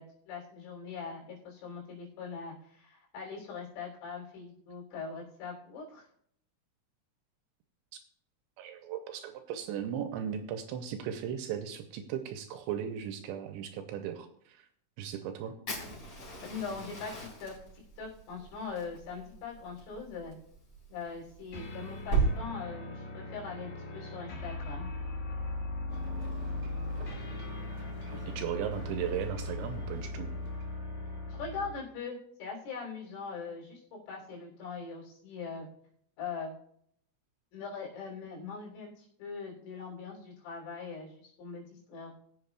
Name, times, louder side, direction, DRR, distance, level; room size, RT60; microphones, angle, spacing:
voice 1, 0.0-6.0 16.4-20.4 20.9-24.9 31.3-35.7 36.2-36.5 37.5-42.2, left 5 dB, 85° left, -3 dB, 5.9 m, -41 dB
voice 2, 8.6-14.7 15.0-15.6 28.3-30.3, right 9 dB, 85° right, 6 dB, 2.8 m, -37 dB
Fire, 15.7-22.3, right 4 dB, 30° left, 4.2 m, -36 dB
sound 1, 21.5-31.9, left 2 dB, 60° left, 2.1 m, -38 dB
Ocean, 25.9-30.8, right 1 dB, 40° right, 1.6 m, -49 dB
21.5 x 7.8 x 2.3 m, 0.69 s
omnidirectional pair, 5.6 m